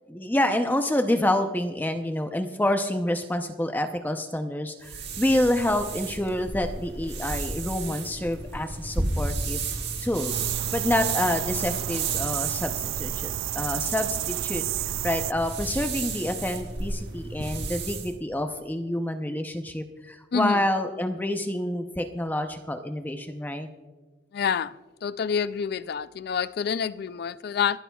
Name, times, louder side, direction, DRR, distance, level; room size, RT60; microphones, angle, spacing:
voice 1, 0.1-9.6 10.0-10.3 10.7-14.6 15.0-23.7, left 1 dB, 10° left, 0.6 m, -27 dB
sound 1, 4.8-18.1, right 3 dB, 60° right, 1.7 m, -33 dB
sound 2, 10.3-15.3, right 15 dB, 85° right, 0.3 m, -31 dB
voice 2, 24.3-24.7 25.0-27.8, left 7 dB, 55° left, 0.3 m, -27 dB
27.0 x 11.5 x 2.3 m
head